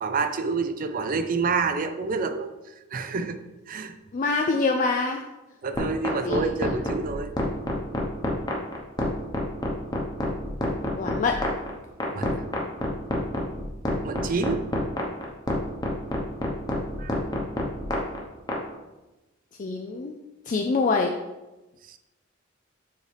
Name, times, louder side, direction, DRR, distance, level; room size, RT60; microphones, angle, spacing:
voice 1, 0.0-2.5 2.9-3.4 3.7-3.9 5.6-7.3 12.0-12.4 14.0-14.6 17.0-17.1, right 4 dB, 45° right, 9 dB, 0.4 m, -28 dB
voice 2, 4.1-5.2 6.0-6.7 11.0-11.4 19.6-20.2 20.5-21.1, left 3 dB, 40° left, 3 dB, 0.4 m, -25 dB
sound 1, 5.7-18.6, left 1 dB, 20° left, 0.9 m, -27 dB
7.0 x 4.4 x 3.3 m, 1.1 s
head